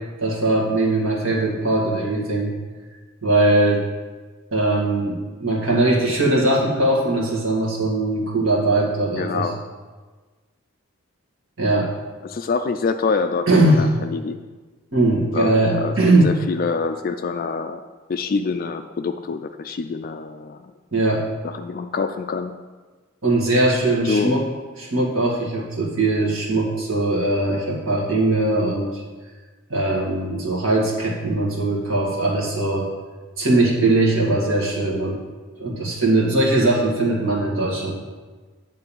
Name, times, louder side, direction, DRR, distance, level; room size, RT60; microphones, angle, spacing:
voice 1, 0.2-2.5 3.2-3.9 4.5-9.5 11.6-11.9 13.5-13.8 14.9-16.3 20.9-21.2 23.2-24.4 24.8-29.0 29.7-32.9 33.4-35.2 35.6-37.9, right 2 dB, 65° right, -3 dB, 1.9 m, -20 dB
voice 2, 9.1-9.5 12.2-14.4 15.3-17.8 18.1-20.7 21.4-22.5 24.0-24.4, left 4 dB, 40° left, 7 dB, 0.3 m, -26 dB
9.1 x 3.9 x 7.2 m, 1.4 s
head